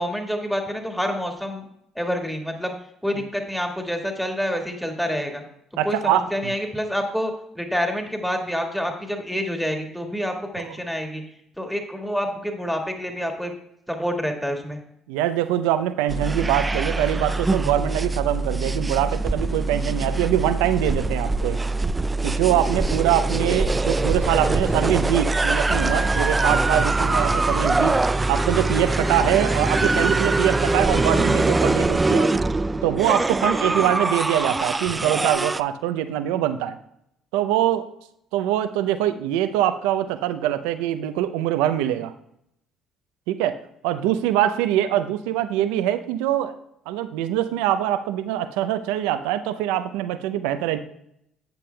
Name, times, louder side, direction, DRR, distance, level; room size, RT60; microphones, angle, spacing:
voice 1, 0.0-1.6 2.0-2.7 3.0-5.4 5.8-11.2 11.6-13.5 13.9-14.8, equal, ahead, 3 dB, 1.9 m, -27 dB
voice 2, 5.8-6.5 10.6-10.8 15.1-21.6 22.2-28.0 28.3-32.3 32.8-36.8 37.3-37.9 38.3-42.1 43.3-43.6 43.8-46.5 46.9-50.8, right 11 dB, 80° right, 11 dB, 0.5 m, -23 dB
sound 1, 16.1-35.6, right 2 dB, 20° right, 0.3 m, -23 dB
11.5 x 8.3 x 2.2 m, 0.75 s
hypercardioid pair, 60°, 0 cm